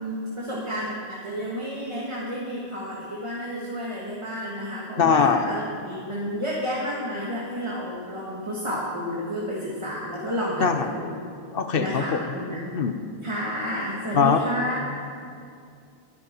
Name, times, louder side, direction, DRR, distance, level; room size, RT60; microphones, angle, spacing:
voice 1, 0.0-11.2 11.8-12.7 13.2-14.9, equal, 30° right, -6 dB, 1.8 m, -31 dB
voice 2, 5.0-5.4 10.6-10.9 11.5-12.2 12.7-12.9 14.1-14.4, left 6 dB, 65° left, 8 dB, 1.0 m, -21 dB
20.0 x 10.5 x 4.5 m, 2.4 s
omnidirectional pair, 1.0 m